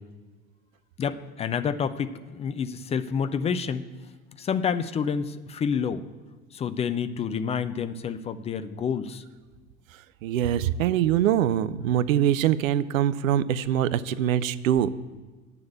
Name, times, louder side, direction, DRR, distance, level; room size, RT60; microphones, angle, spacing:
voice 1, 1.0-3.8 4.4-6.0 6.5-9.2, left 6 dB, 15° left, 11 dB, 0.4 m, -28 dB
voice 2, 10.2-14.9, right 10 dB, 65° right, 16 dB, 0.6 m, -23 dB
8.4 x 6.9 x 8.2 m, 1.4 s
figure-of-eight pair, 65°, 43 cm